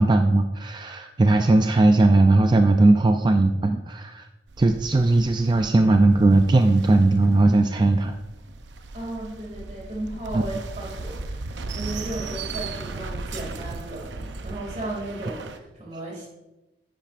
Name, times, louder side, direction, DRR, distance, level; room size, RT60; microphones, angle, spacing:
voice 1, 0.0-4.3 4.6-8.2 10.3-10.4, right 2 dB, 25° right, 6 dB, 0.3 m, -18 dB
sound 1, 4.5-15.6, right 3 dB, 90° right, 0.7 m, -37 dB
voice 2, 8.9-16.3, right 2 dB, 40° right, -2 dB, 2.4 m, -35 dB
10.0 x 8.9 x 2.5 m, 1.0 s
head